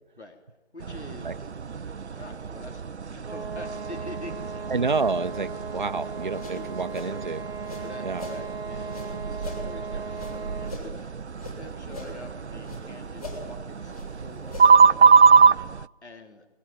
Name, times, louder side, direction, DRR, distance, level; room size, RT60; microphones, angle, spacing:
voice 1, 0.7-1.5 2.2-4.6 7.9-11.0 11.5-15.2 16.0-16.5, left 2 dB, 90° left, 4 dB, 3.6 m, -45 dB
sound 1, 0.8-15.8, right 6 dB, 90° right, 0.7 m, -24 dB
sound 2, 3.2-10.9, right 4 dB, 65° right, 1.4 m, -38 dB
voice 2, 4.7-7.4 8.0-8.3, right 4 dB, 45° right, 9 dB, 0.9 m, -28 dB
sound 3, 6.1-8.4 8.8-11.6 11.9-12.9 13.1-14.9, left 2 dB, 35° left, 7.1 m, -42 dB
22.5 x 21.0 x 8.9 m, 1.1 s
figure-of-eight pair, 175°, 33 cm